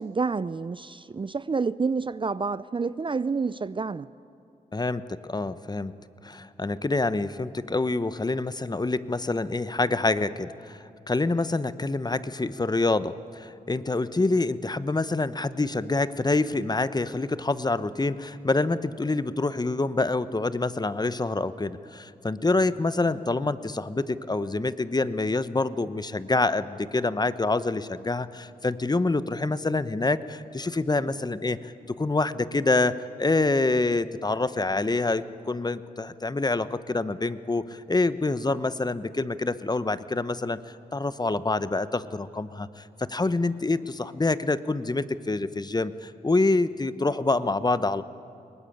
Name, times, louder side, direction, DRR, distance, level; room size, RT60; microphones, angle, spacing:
voice 1, 0.0-4.1, right 4 dB, 30° right, 0.5 m, -28 dB
voice 2, 4.7-5.9 6.2-40.6 40.9-48.0, left 3 dB, 25° left, 1.0 m, -26 dB
22.5 x 19.5 x 8.7 m
supercardioid pair, 45°, 16 cm